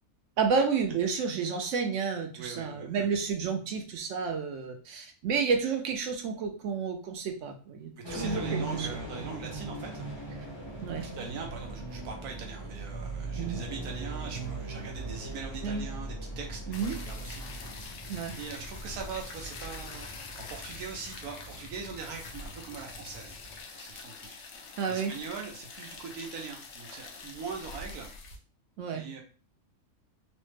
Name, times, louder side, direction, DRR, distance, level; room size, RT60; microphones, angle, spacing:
voice 1, 0.4-8.9 10.8-11.1 13.4-13.6 15.6-15.9 16.7-17.0 18.1-18.4 24.8-25.1 28.8-29.0, right 5 dB, 70° right, 5 dB, 0.8 m, -31 dB
voice 2, 2.4-3.1 8.0-10.1 10.9-17.8 18.4-23.4 23.7-24.4 24.9-28.1 28.9-29.2, right 5 dB, 85° right, 1 dB, 1.2 m, -41 dB
sound 1, 8.0-23.6, right 2 dB, 25° left, 0.6 m, -40 dB
sound 2, 16.7-28.4, left 4 dB, 65° left, 0.8 m, -45 dB
3.2 x 2.1 x 3.1 m, 0.38 s
omnidirectional pair, 1.5 m